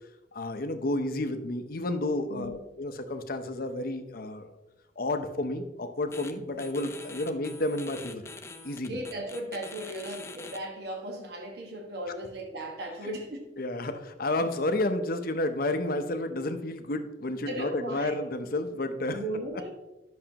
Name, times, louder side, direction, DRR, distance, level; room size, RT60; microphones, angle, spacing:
voice 1, 0.3-4.5 5.0-8.2 8.6-9.0 13.6-19.2, left 2 dB, 55° left, 8 dB, 0.8 m, -31 dB
sound 1, 6.1-6.3 6.6-10.6, left 3 dB, 15° left, 0.6 m, -44 dB
voice 2, 8.9-13.5 17.5-18.3 19.1-19.7, right 1 dB, 65° right, 1 dB, 1.5 m, -36 dB
11.0 x 6.4 x 2.9 m, 1.0 s
head